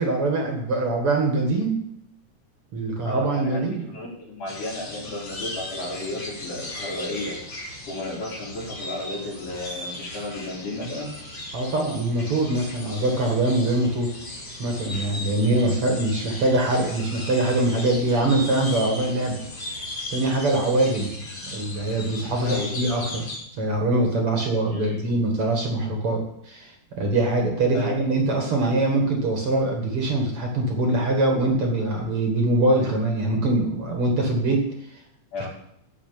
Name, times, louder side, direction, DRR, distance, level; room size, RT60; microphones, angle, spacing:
voice 1, 0.0-1.8 2.7-3.8 11.5-14.1 14.6-21.2 21.5-23.2 23.5-34.6, right 2 dB, 50° right, 1 dB, 2.4 m, -23 dB
voice 2, 3.0-7.4 7.9-11.1 22.4-22.8 24.6-25.0 27.7-28.1 35.3-35.5, left 2 dB, 75° left, -3 dB, 4.9 m, -33 dB
sound 1, 4.5-23.4, left 1 dB, 30° left, 3.6 m, -37 dB
13.5 x 5.1 x 8.9 m, 0.75 s
omnidirectional pair, 3.7 m